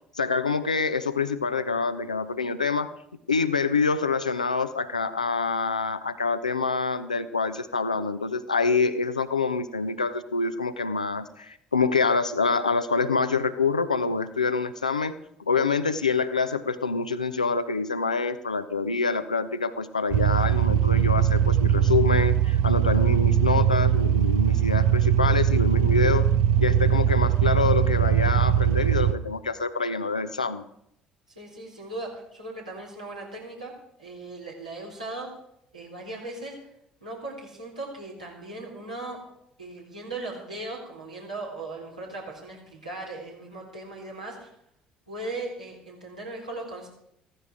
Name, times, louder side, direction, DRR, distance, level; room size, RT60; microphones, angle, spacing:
voice 1, 0.1-2.9 3.3-26.3 26.6-30.6, left 4 dB, 85° left, 11 dB, 0.7 m, -26 dB
sound 1, 20.1-29.1, right 9 dB, 60° right, 0.8 m, -21 dB
voice 2, 31.3-33.7 34.0-35.4 35.7-36.6 37.0-39.2 39.6-44.5 45.1-46.9, right 2 dB, 85° right, -4 dB, 4.4 m, -38 dB
15.0 x 14.5 x 4.9 m, 0.75 s
figure-of-eight pair, 55°, 4 cm